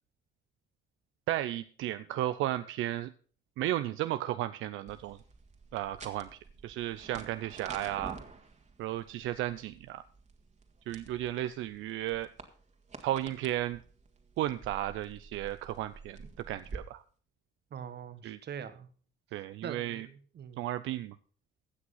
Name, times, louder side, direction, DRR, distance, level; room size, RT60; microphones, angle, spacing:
voice 1, 1.3-3.1 3.6-5.2 5.7-8.2 8.8-10.0 10.9-12.3 13.0-13.8 14.4-16.2 16.5-17.0 18.2-18.4 19.3-20.1 20.6-21.2, right 13 dB, 85° right, 12 dB, 0.5 m, -34 dB
sound 1, 4.9-16.8, right 4 dB, 35° right, 2.0 m, -50 dB
voice 2, 17.7-18.9 19.6-20.6, right 8 dB, 60° right, 12 dB, 1.4 m, -43 dB
16.0 x 6.2 x 5.6 m, 0.42 s
cardioid pair, 90°, 20 cm